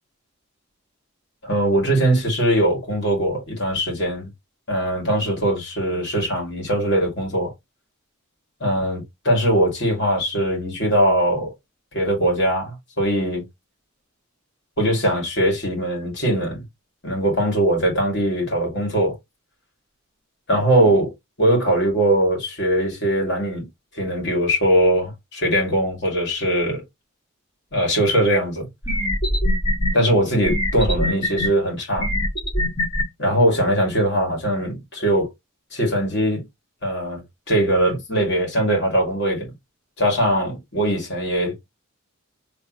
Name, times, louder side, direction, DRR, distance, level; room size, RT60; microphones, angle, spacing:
voice 1, 1.4-4.3 4.7-7.5 8.6-11.5 11.9-13.4 14.8-16.6 17.0-19.2 20.5-21.1 21.4-23.7 23.9-26.8 27.7-28.7 29.9-32.1 33.2-35.3 35.7-36.4 36.8-39.5 40.0-41.6, right 1 dB, 55° left, 2.4 m, -21 dB
sound 1, 28.3-28.4 28.8-29.9 30.4-31.5 32.0-33.0, left 1 dB, 25° left, 2.4 m, -22 dB
3.5 x 3.3 x 3.1 m
head